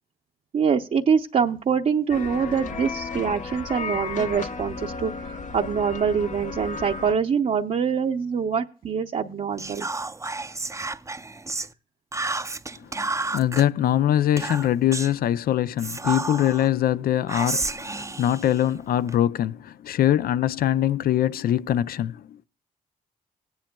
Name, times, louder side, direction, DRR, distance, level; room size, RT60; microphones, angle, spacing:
voice 1, 0.5-9.9, right 6 dB, 50° right, 0.7 m, -24 dB
sound 1, 2.1-7.1, left 4 dB, 55° left, 0.9 m, -34 dB
Whispering, 9.6-11.7 12.1-13.6 14.4-15.2 15.8-16.7 17.3-19.2, right 3 dB, 20° right, 0.5 m, -31 dB
voice 2, 12.8-22.4, left 11 dB, 75° left, 0.5 m, -23 dB
17.5 x 10.5 x 2.3 m
cardioid pair, 60°, 15 cm